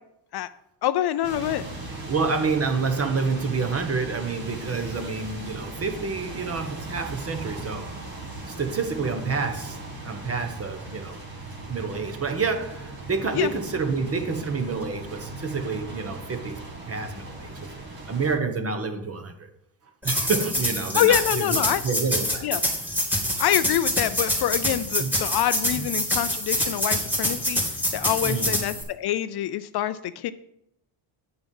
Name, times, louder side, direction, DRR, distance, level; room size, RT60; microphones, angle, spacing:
voice 1, 0.8-1.6 13.3-13.5 20.9-21.8 22.4-22.6 23.4-27.6 27.9-30.3, left 12 dB, 55° left, 0.5 m, -25 dB
sound 1, 1.2-18.4, right 2 dB, 45° right, 2.2 m, -38 dB
voice 2, 2.1-7.9 8.5-9.8 10.0-11.2 11.7-16.6 16.9-17.7 18.1-19.5 20.0-22.5 22.7-22.8 23.3-23.5 25.0-25.2 25.7-25.9 28.2-28.6, right 4 dB, 30° right, 1.2 m, -28 dB
sound 2, 20.0-28.8, left 1 dB, 5° right, 2.7 m, -26 dB
8.9 x 7.0 x 5.4 m
cardioid pair, 125°, 48 cm